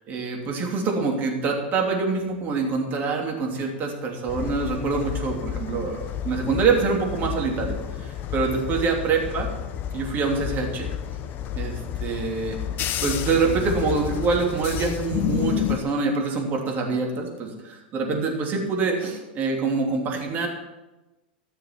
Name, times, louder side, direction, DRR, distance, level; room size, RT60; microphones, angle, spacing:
voice 1, 0.1-9.5 9.9-10.9 11.5-12.6 13.0-20.5, right 4 dB, 35° right, 0 dB, 3.1 m, -25 dB
sound 1, 4.3-15.8, left 9 dB, 40° left, 0.8 m, -30 dB
14.0 x 6.8 x 6.1 m, 1.1 s
hypercardioid pair, 105°, 5 cm